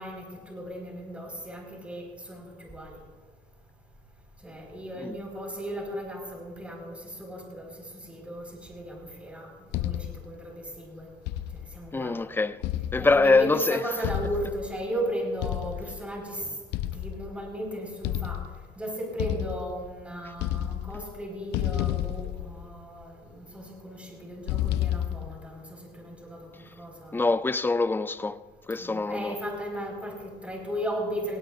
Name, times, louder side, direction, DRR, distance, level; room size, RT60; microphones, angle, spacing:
voice 1, 0.0-3.0 4.4-11.1 11.5-12.2 13.0-16.5 16.9-18.4 18.8-26.5 26.8-27.2 28.7-31.4, right 1 dB, 5° right, 4.9 m, -36 dB
sound 1, 9.7-10.3 11.3-11.8 12.6-13.4 14.0-14.8 15.4-16.0 16.7-17.5 18.0-18.7 19.2-20.0 20.3-21.2 21.5-23.0 24.5-25.4, left 13 dB, 85° left, 0.6 m, -31 dB
voice 2, 11.9-12.6 12.9-13.8 27.1-28.4 28.7-29.4, left 3 dB, 10° left, 0.5 m, -24 dB
19.0 x 17.0 x 2.6 m
cardioid pair, 110°, 17 cm